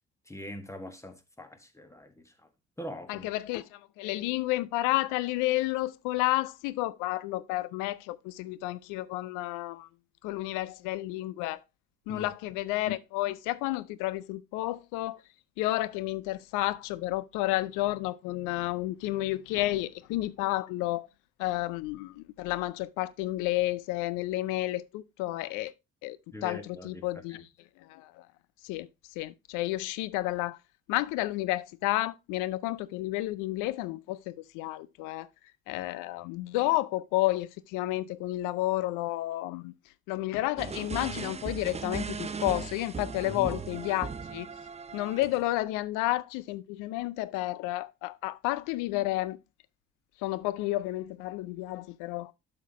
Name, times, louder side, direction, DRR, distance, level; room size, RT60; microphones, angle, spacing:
voice 1, 0.3-2.5 2.8-3.3 12.1-12.3 26.3-27.4 35.7-35.8 43.2-43.6, left 1 dB, 10° left, 1.6 m, -43 dB
voice 2, 3.1-9.9 10.2-11.6 12.1-15.2 15.6-21.1 21.4-25.7 26.0-26.2 26.4-27.4 27.8-28.3 28.6-28.9 29.2-30.6 30.9-35.3 35.7-39.7 40.1-44.5 44.9-49.4 50.2-52.3, left 17 dB, 65° left, 0.5 m, -31 dB
sound 1, 40.6-45.5, right 5 dB, 20° right, 0.6 m, -38 dB
12.0 x 4.4 x 2.9 m
hypercardioid pair, 50°, 33 cm